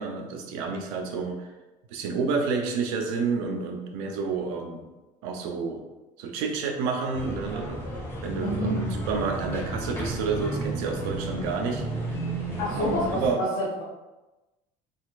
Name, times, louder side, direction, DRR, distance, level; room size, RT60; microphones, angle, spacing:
voice 1, 0.0-1.5 1.9-4.8 5.2-5.8 6.2-7.8 8.2-12.2 12.7-13.4, right 4 dB, 90° right, 3 dB, 0.6 m, -29 dB
sound 1, 7.1-13.3, right 2 dB, 15° left, 1.1 m, -33 dB
voice 2, 8.3-8.8 12.6-13.8, left 1 dB, 75° left, -6 dB, 0.8 m, -28 dB
4.1 x 2.6 x 2.4 m, 1.1 s
cardioid pair, 135°, 17 cm